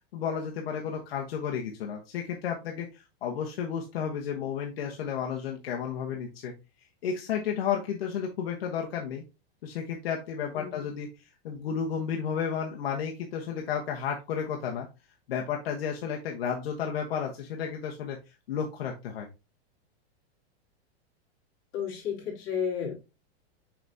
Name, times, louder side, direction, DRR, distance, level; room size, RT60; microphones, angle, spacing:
voice 1, 0.1-6.5 7.0-9.2 9.6-11.1 11.4-14.9 15.3-18.2 18.5-19.3, left 7 dB, 70° left, 1 dB, 1.3 m, -32 dB
voice 2, 21.7-22.9, left 7 dB, 35° left, -3 dB, 3.5 m, -32 dB
5.9 x 5.9 x 2.7 m, 0.27 s
supercardioid pair, 165°, 31 cm